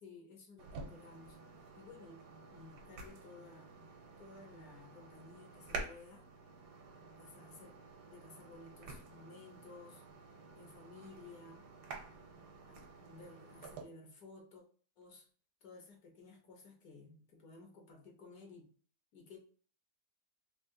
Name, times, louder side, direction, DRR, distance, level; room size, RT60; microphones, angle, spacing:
voice 1, 0.0-1.4 1.7-2.2 2.5-3.8 4.2-6.3 7.2-7.8 8.0-10.0 10.5-11.7 12.6-14.6 15.0-15.3 15.6-18.7 19.1-19.4, left 3 dB, 65° left, 2 dB, 1.2 m, -55 dB
sound 1, 0.6-13.8, right 3 dB, 75° right, 1.2 m, -50 dB
3.6 x 2.4 x 2.6 m, 0.42 s
omnidirectional pair, 1.8 m